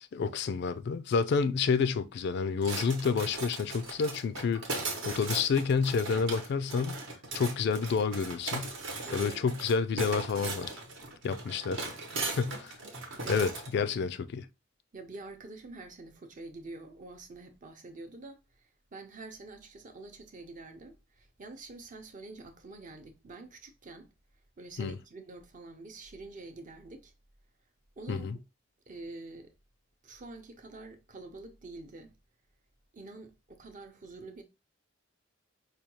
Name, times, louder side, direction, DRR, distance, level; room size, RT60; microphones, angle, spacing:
voice 1, 0.1-4.7 5.0-7.0 7.3-8.7 9.1-10.8 11.2-11.9 12.2-12.8 13.3-14.5 24.8-24.9 28.1-28.4, left 5 dB, 55° left, 0.3 m, -29 dB
sound 1, 2.6-13.7, right 3 dB, 65° right, 1.0 m, -38 dB
voice 2, 9.0-9.6 13.2-13.5 14.9-24.1 24.6-27.1 28.0-28.3 28.9-29.5 30.0-32.1 32.9-34.4, right 3 dB, 40° right, 0.6 m, -47 dB
4.9 x 2.3 x 2.9 m
head